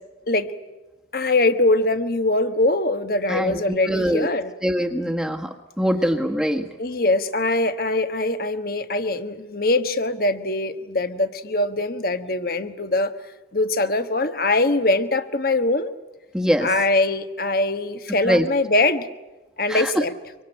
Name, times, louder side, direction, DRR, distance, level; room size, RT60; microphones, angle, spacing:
voice 1, 1.1-4.5 6.8-13.1 13.5-15.9 16.6-19.1 19.6-20.1, left 2 dB, 50° left, 10 dB, 1.4 m, -22 dB
voice 2, 3.3-4.3 4.6-6.7 16.3-16.7 18.2-18.5 19.7-20.0, equal, 5° right, 3 dB, 1.4 m, -23 dB
25.0 x 25.0 x 8.9 m, 1.1 s
head